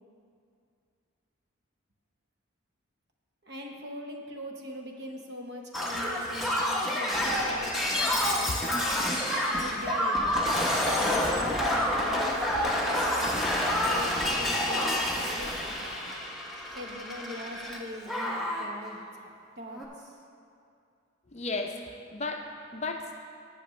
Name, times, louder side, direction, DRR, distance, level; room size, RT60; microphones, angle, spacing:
voice 1, 3.4-8.9 9.5-16.2 16.7-20.1, left 1 dB, 50° right, 1 dB, 1.0 m, -42 dB
Shatter, 5.7-17.8 18.1-18.7 19.7-19.8, left 1 dB, ahead, 0.8 m, -28 dB
voice 2, 21.3-23.2, left 3 dB, 30° left, 3 dB, 0.5 m, -35 dB
16.0 x 6.0 x 3.1 m, 2.4 s
head